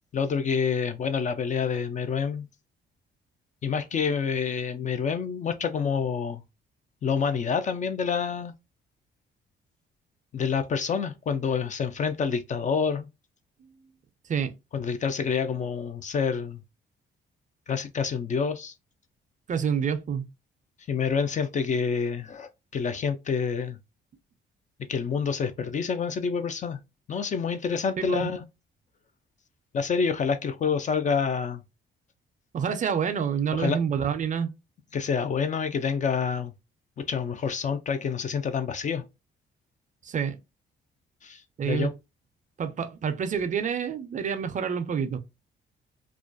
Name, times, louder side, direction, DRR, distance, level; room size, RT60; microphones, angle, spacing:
voice 1, 0.1-2.5 3.6-6.4 7.0-8.5 10.3-13.1 14.7-16.6 17.7-18.7 20.9-23.8 24.9-26.8 27.1-28.4 29.7-31.6 33.5-33.8 34.9-36.5 37.0-39.0 41.2-41.9, left 6 dB, 40° left, 0.4 m, -27 dB
voice 2, 19.5-20.3 28.0-28.2 32.5-34.5 40.0-40.4 41.6-41.9 42.6-45.2, right 7 dB, 40° right, 0.4 m, -28 dB
2.3 x 2.2 x 2.4 m
cardioid pair, 90°, 20 cm